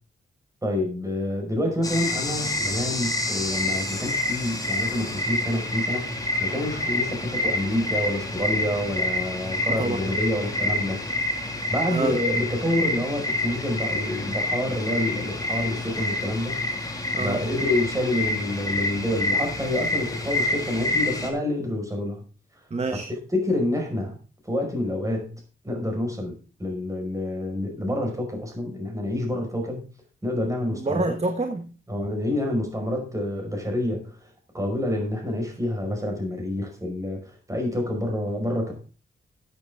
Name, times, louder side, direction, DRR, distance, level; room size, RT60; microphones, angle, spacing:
voice 1, 0.6-6.1 6.4-11.0 11.7-16.6 17.2-22.2 23.1-24.2 24.4-25.4 25.6-26.3 26.6-29.8 30.2-31.1 31.9-34.3 34.5-38.7, left 1 dB, 15° right, 2 dB, 5.3 m, -27 dB
sound 1, 1.8-21.3, left 1 dB, 15° left, 2.5 m, -28 dB
voice 2, 9.7-10.0 11.9-12.1 17.1-17.4 22.7-23.1 30.7-31.7, right 3 dB, 30° right, 7 dB, 1.4 m, -27 dB
13.5 x 8.6 x 3.7 m, 0.35 s
cardioid pair, 90°, 21 cm